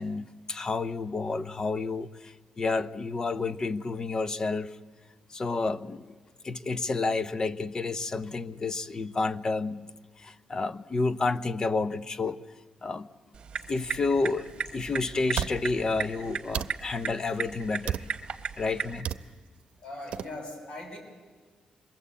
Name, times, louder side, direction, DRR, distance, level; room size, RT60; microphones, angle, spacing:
voice 1, 0.0-4.8 5.3-6.2 6.4-12.4 12.8-13.1 13.7-18.1 18.6-19.1, left 3 dB, 30° left, 14 dB, 0.8 m, -30 dB
sound 1, 13.3-19.0, right 6 dB, 50° right, 1.5 m, -37 dB
sound 2, 14.5-14.6 15.3-15.6 16.5-16.7 17.9-18.2 19.0-19.2 20.1-20.3, right 10 dB, 75° right, 0.8 m, -31 dB
voice 2, 19.8-21.0, left 1 dB, 50° left, 3 dB, 7.2 m, -40 dB
27.0 x 22.5 x 8.4 m, 1.4 s
cardioid pair, 135°, 2 cm